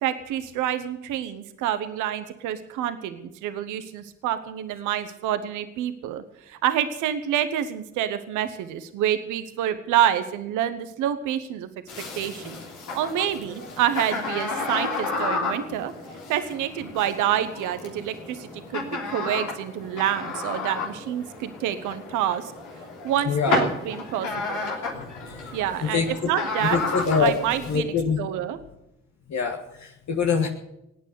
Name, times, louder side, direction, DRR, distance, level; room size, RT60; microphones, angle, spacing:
voice 1, 0.0-11.7 12.1-12.6 12.9-15.9 16.3-22.5 23.0-24.7 25.5-26.8 27.2-28.6, right 10 dB, 90° right, 10 dB, 1.0 m, -27 dB
sound 1, 11.9-27.8, left 3 dB, 85° left, 3.2 m, -32 dB
voice 2, 23.2-23.6 24.9-26.3 26.6-27.3 27.7-28.2 29.3-30.5, left 5 dB, 65° left, 2 dB, 1.7 m, -25 dB
18.0 x 9.2 x 8.2 m, 0.86 s
hypercardioid pair, 40°, 30 cm